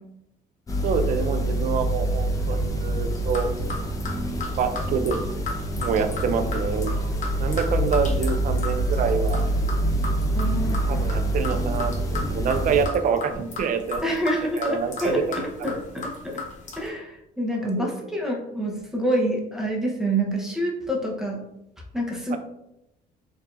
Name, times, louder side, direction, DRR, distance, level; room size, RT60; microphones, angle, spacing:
sound 1, 0.7-12.9, right 1 dB, 20° left, 0.6 m, -26 dB
voice 1, 0.8-3.5 4.6-5.2 5.8-6.9 7.4-9.4 10.9-14.0 14.6-15.2 17.8-17.9 22.3-22.4, right 6 dB, 50° right, 8 dB, 0.5 m, -26 dB
sound 2, 3.1-16.9, left 3 dB, 45° left, 1.1 m, -36 dB
voice 2, 10.3-10.8 14.0-16.4 16.8-21.4 21.9-22.4, right 1 dB, 5° right, -1 dB, 0.9 m, -27 dB
4.6 x 2.7 x 2.5 m, 0.85 s
cardioid pair, 110°, 17 cm